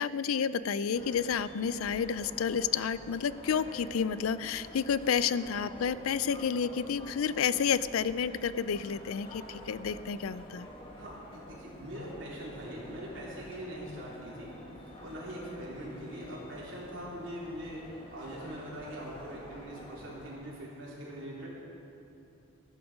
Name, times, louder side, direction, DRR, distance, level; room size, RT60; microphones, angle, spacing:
voice 1, 0.0-10.7, left 7 dB, 85° left, 16 dB, 0.4 m, -30 dB
sound 1, 0.9-20.3, left 1 dB, 25° left, 1.5 m, -48 dB
voice 2, 11.0-14.5 15.0-21.5, equal, 60° right, -6 dB, 3.9 m, -42 dB
15.0 x 12.0 x 5.1 m, 2.8 s
head